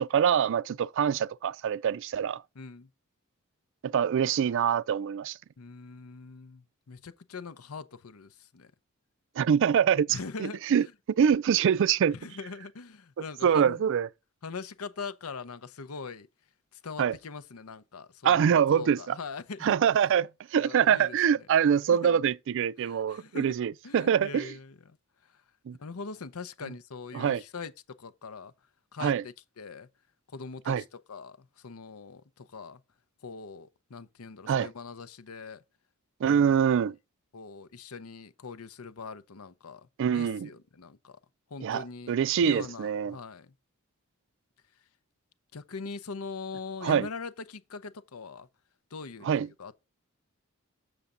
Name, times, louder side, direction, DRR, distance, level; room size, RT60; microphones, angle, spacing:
voice 1, 0.0-2.4 3.8-5.4 9.4-10.8 11.2-12.1 13.4-14.1 17.0-17.1 18.2-19.2 19.6-24.5 25.7-25.8 27.1-27.4 29.0-29.2 30.7-30.8 34.5-34.7 36.2-37.0 40.0-40.5 41.6-43.2 46.8-47.1 49.2-49.5, right 8 dB, 60° right, 0.3 m, -25 dB
voice 2, 2.5-2.9 5.6-8.7 10.1-10.9 12.1-13.8 14.4-16.3 16.7-19.8 20.6-21.5 21.9-22.2 22.8-23.5 23.8-25.0 25.2-25.4 25.8-28.5 28.9-29.9 30.3-32.8 33.2-35.6 36.2-36.6 37.3-41.2 41.5-43.5 45.5-48.5 48.9-49.7, left 4 dB, 85° left, 0.7 m, -42 dB
7.1 x 6.6 x 3.8 m
head